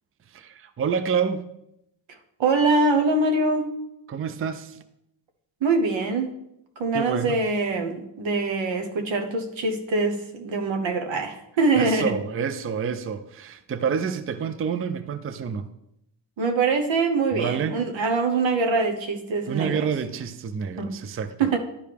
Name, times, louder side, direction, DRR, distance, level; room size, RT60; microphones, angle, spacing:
voice 1, 0.3-1.5 4.1-4.8 6.9-7.4 11.8-15.7 17.3-17.8 19.5-21.5, right 7 dB, 30° right, 0.4 m, -28 dB
voice 2, 2.4-3.7 5.6-6.3 6.8-12.1 16.4-19.9 20.8-21.0 21.4-21.6, right 3 dB, 80° right, 1.1 m, -23 dB
11.0 x 4.9 x 3.4 m
cardioid pair, 95°, 45 cm